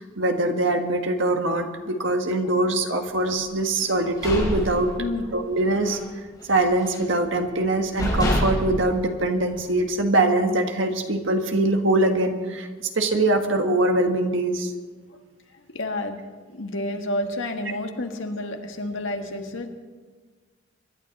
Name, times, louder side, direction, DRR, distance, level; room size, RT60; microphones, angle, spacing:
voice 1, 0.0-4.9 5.3-6.0 6.5-14.7, right 2 dB, 75° right, 4 dB, 1.6 m, -23 dB
sound 1, 3.9-5.5 5.8-6.1 6.4-7.2 7.6-7.7 8.0-9.8, equal, 20° left, 4.8 m, -27 dB
voice 2, 15.7-16.2 16.5-19.7, left 1 dB, 75° left, 4 dB, 1.7 m, -29 dB
24.5 x 11.5 x 4.2 m, 1.4 s
head